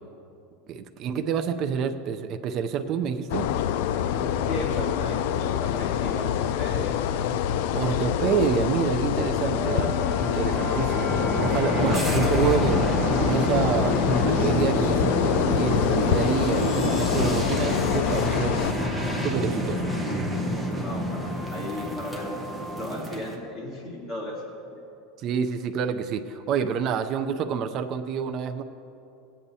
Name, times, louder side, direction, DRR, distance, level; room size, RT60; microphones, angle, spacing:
voice 1, 0.7-3.5 7.7-14.0 14.2-18.6 19.2-19.9 25.2-28.6, right 7 dB, 35° right, 6 dB, 0.4 m, -28 dB
sound 1, 3.3-18.7, left 10 dB, 65° left, 0.3 m, -26 dB
voice 2, 4.1-6.9 11.7-11.8 20.5-22.3 22.8-24.8, left 1 dB, 20° left, -6 dB, 2.5 m, -36 dB
sound 2, 9.5-23.4, equal, ahead, 0.9 m, -28 dB
18.5 x 8.6 x 2.7 m, 2.7 s
supercardioid pair, 165°, 0 cm